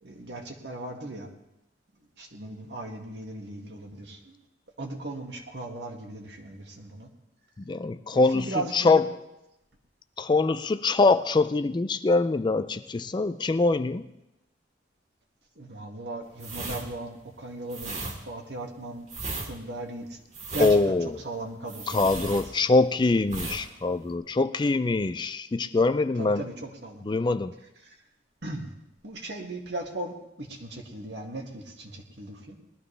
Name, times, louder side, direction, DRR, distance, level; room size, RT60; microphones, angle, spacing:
voice 1, 0.0-1.3 2.2-4.4 4.8-7.1 8.1-9.0 15.6-17.9 18.3-19.1 19.4-20.2 20.5-20.9 21.2-22.4 26.2-27.1 27.8-28.0 28.4-28.7 29.0-32.6, right 2 dB, 65° right, 2 dB, 1.9 m, -37 dB
voice 2, 7.7-9.1 10.2-14.0 20.6-21.2 21.9-26.4 27.0-27.5, left 3 dB, 25° left, 12 dB, 0.4 m, -24 dB
sound 1, 16.4-22.9 23.2-23.6 23.9-24.1, right 3 dB, 40° right, 2.3 m, -36 dB
20.0 x 13.0 x 3.3 m, 0.89 s
head